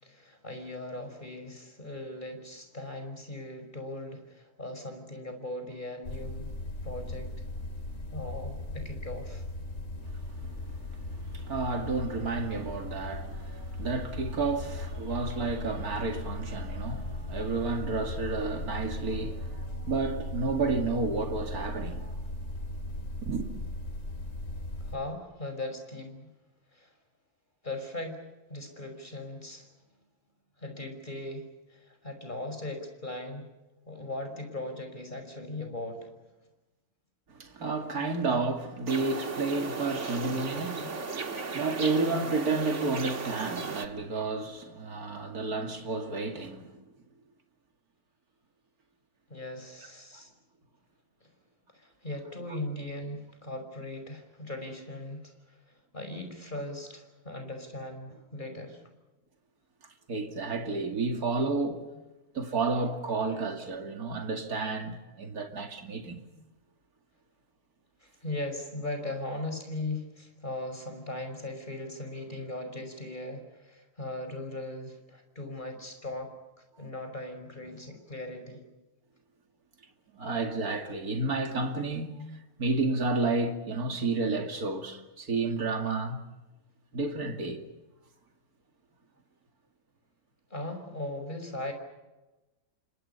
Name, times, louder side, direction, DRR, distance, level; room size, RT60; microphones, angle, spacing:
voice 1, 0.0-6.5 6.8-7.3 8.1-9.4 24.8-26.3 26.7-26.9 27.6-28.2 28.5-29.7 30.6-33.4 33.9-36.1 49.3-50.3 51.2-51.3 51.7-55.6 55.9-58.8 68.0-76.3 76.8-78.6 90.5-91.7, left 2 dB, 30° left, 5.6 m, -39 dB
sound 1, 6.1-25.0, left 1 dB, 55° left, 3.0 m, -38 dB
voice 2, 11.3-22.1 23.2-23.5 37.4-46.6 60.1-61.9 62.3-66.2 80.2-82.1 82.6-86.2 86.9-87.6, right 3 dB, 70° right, 2.9 m, -31 dB
sound 2, 38.9-43.9, right 4 dB, 50° right, 2.1 m, -35 dB
29.5 x 25.5 x 5.6 m
omnidirectional pair, 1.6 m